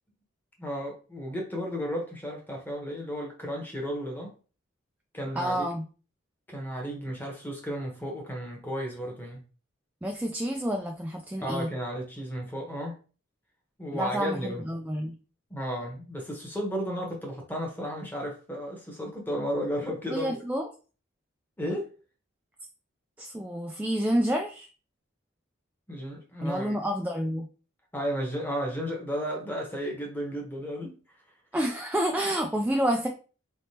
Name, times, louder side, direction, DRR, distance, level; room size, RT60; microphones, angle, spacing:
voice 1, 0.6-4.3 5.1-5.7 6.5-9.4 11.4-12.9 13.8-14.7 15.5-20.4 21.6-21.9 25.9-26.8 27.9-30.9, equal, 10° left, 0 dB, 1.1 m, -33 dB
voice 2, 5.4-5.8 10.0-11.7 13.9-15.2 20.1-20.6 23.2-24.7 26.4-27.5 31.5-33.1, equal, 5° right, 2 dB, 0.3 m, -29 dB
4.1 x 3.4 x 2.8 m, 0.36 s
head